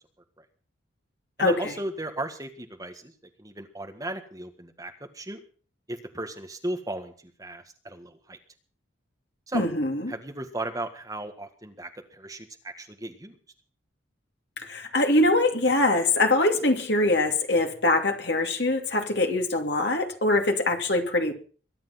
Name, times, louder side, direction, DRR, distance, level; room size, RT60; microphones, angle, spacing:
voice 1, 1.4-3.1 3.4-5.4 5.9-8.4 9.5-9.6 10.1-13.4, right 1 dB, 20° right, 1.7 m, -36 dB
voice 2, 9.5-10.1 14.6-21.3, left 2 dB, 55° left, 2.6 m, -23 dB
22.5 x 10.5 x 5.8 m
head